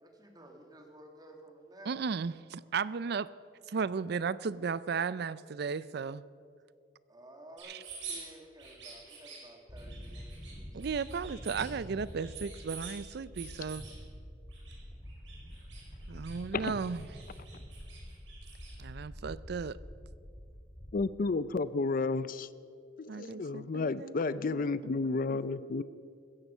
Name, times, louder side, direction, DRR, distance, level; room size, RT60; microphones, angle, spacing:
voice 1, 0.0-1.9 7.1-10.9, right 1 dB, 20° right, 3 dB, 1.9 m, -53 dB
voice 2, 1.8-3.3 3.7-6.2 7.6-7.8 10.7-13.8 16.1-17.1 18.8-19.8 23.1-24.2 24.5-25.4, right 5 dB, 60° right, 18 dB, 0.4 m, -35 dB
sound 1, 7.6-8.2 8.6-9.4 9.8-10.5 10.8-11.7 12.0-12.9 13.3-13.9 14.5-14.7 15.0-16.4 16.6-18.7, right 6 dB, 85° right, 5.2 m, -47 dB
sound 2, 9.7-20.9, equal, 15° left, 2.8 m, -47 dB
voice 3, 20.9-22.5 23.0-25.8, left 3 dB, 50° left, 16 dB, 0.5 m, -32 dB
16.5 x 14.5 x 5.5 m, 2.3 s
head